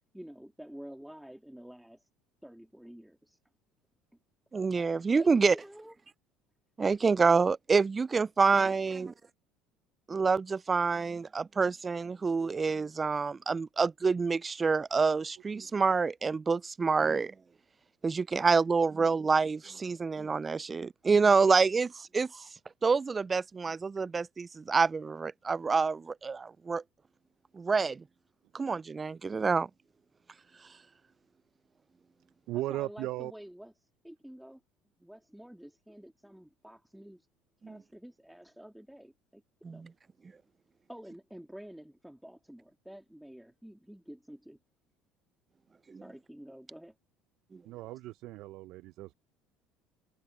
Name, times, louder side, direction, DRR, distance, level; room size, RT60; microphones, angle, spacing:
voice 1, 0.1-2.1 2.4-3.4 5.2-6.0 32.5-34.6 35.0-37.3 37.7-39.4 39.7-39.9 40.9-44.6 46.0-46.9, equal, 5° right, 2.7 m, -49 dB
voice 2, 4.5-5.5 6.8-9.1 10.1-17.3 18.0-22.4 22.8-26.8 27.5-28.0 28.5-29.7 37.6-37.8 39.6-39.9 45.9-46.0 47.5-47.6, right 4 dB, 25° right, 0.3 m, -27 dB
voice 3, 32.5-33.3 47.6-49.1, right 16 dB, 65° right, 0.7 m, -37 dB
supercardioid pair, 80°, 0 cm